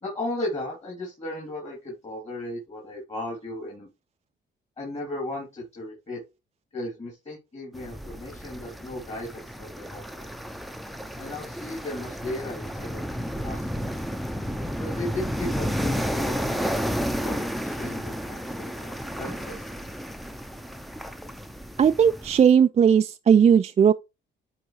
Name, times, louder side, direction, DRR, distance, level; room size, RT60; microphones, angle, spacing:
voice 1, 0.0-3.9 4.8-6.2 6.7-10.3 11.2-13.0 13.3-14.0 14.8-16.8 17.2-19.7, left 1 dB, 35° left, 2.8 m, -36 dB
sound 1, 7.7-22.4, equal, ahead, 0.6 m, -32 dB
voice 2, 21.8-23.9, right 7 dB, 35° right, 0.3 m, -17 dB
10.0 x 3.8 x 3.2 m
cardioid pair, 90°, 20 cm